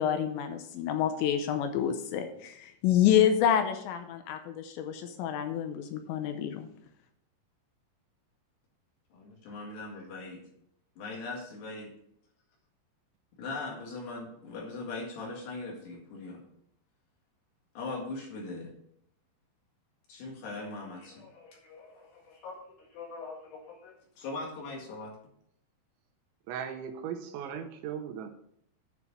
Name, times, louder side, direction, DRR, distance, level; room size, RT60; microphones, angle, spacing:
voice 1, 0.0-6.7, left 9 dB, 80° left, 7 dB, 2.9 m, -28 dB
voice 2, 9.1-10.4 11.0-11.9 13.4-16.4 17.8-18.7 20.1-25.1, left 3 dB, 65° left, 0 dB, 3.7 m, -40 dB
voice 3, 26.5-28.3, right 8 dB, 85° right, 4 dB, 3.1 m, -37 dB
9.8 x 4.6 x 5.6 m, 0.72 s
omnidirectional pair, 5.3 m